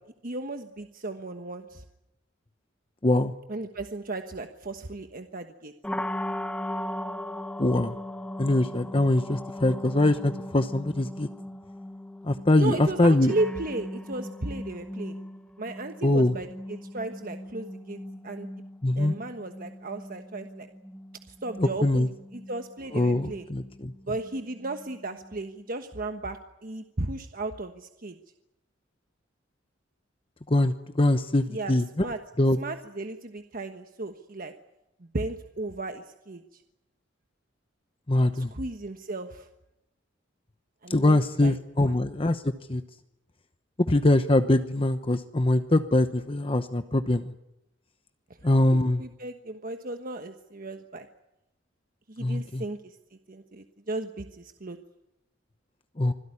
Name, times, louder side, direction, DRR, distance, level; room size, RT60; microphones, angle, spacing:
voice 1, 0.2-1.8 3.5-5.7 12.5-15.1 15.6-18.0 18.2-18.5 19.0-20.7 21.3-22.1 22.3-23.5 24.1-28.2 31.5-32.2 32.5-34.5 35.0-36.6 38.3-39.5 40.8-42.0 48.7-51.1 52.1-53.0 53.3-54.8, right 2 dB, 45° right, 6 dB, 1.3 m, -35 dB
sound 1, 5.8-25.7, left 1 dB, 5° left, 1.2 m, -39 dB
voice 2, 7.6-7.9 8.4-11.3 12.2-13.3 16.0-16.3 18.8-19.2 21.6-22.1 22.9-23.9 30.5-32.0 32.4-32.6 38.1-38.5 40.9-42.4 42.7-42.8 43.9-47.3 48.4-49.0 52.2-52.6 56.0-56.1, left 1 dB, 30° left, 9 dB, 0.9 m, -23 dB
26.0 x 16.5 x 9.9 m, 0.90 s
head